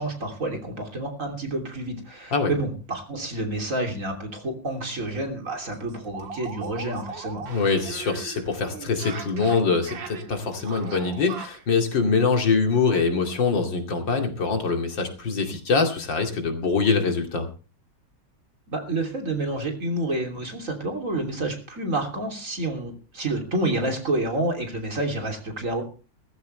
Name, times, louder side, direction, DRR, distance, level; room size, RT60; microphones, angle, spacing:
voice 1, 0.0-7.5 18.7-25.8, right 2 dB, 45° right, 3 dB, 3.5 m, -29 dB
sound 1, 4.7-4.8 5.1-5.2 5.5-11.7, right 6 dB, 85° right, 2.5 m, -39 dB
voice 2, 7.4-17.5, left 4 dB, 80° left, 5 dB, 3.2 m, -24 dB
17.5 x 14.5 x 3.3 m, 0.34 s
omnidirectional pair, 2.0 m